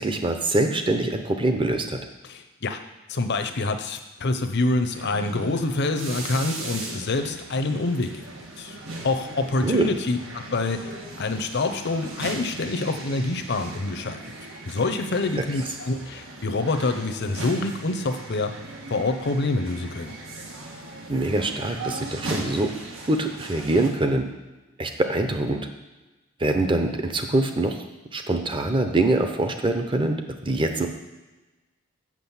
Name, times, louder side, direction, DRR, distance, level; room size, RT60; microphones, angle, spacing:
voice 1, 0.0-2.0 9.6-9.9 15.4-15.5 21.1-22.7 23.1-24.3 24.8-25.6 26.4-27.8 28.1-30.9, right 2 dB, 25° right, 6 dB, 0.7 m, -24 dB
voice 2, 2.2-2.8 3.1-8.8 9.0-10.9 11.2-14.2 14.7-18.5 18.9-20.1, left 2 dB, 55° left, 7 dB, 0.7 m, -26 dB
sound 1, 4.9-23.9, right 2 dB, 85° right, 1.5 m, -38 dB
6.1 x 6.1 x 7.2 m, 1.1 s
head